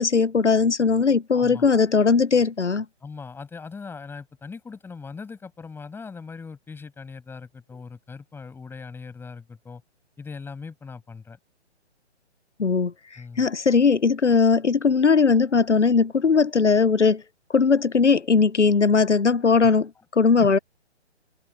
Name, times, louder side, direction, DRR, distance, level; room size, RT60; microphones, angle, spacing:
voice 1, 0.0-2.9 12.6-17.2 17.5-20.6, left 5 dB, 85° left, 0.8 m, -19 dB
voice 2, 1.3-1.7 3.0-9.8 10.2-11.4 13.2-13.5 19.4-19.7 20.4-20.5, left 5 dB, 5° left, 7.8 m, -40 dB
figure-of-eight pair, 135°, 34 cm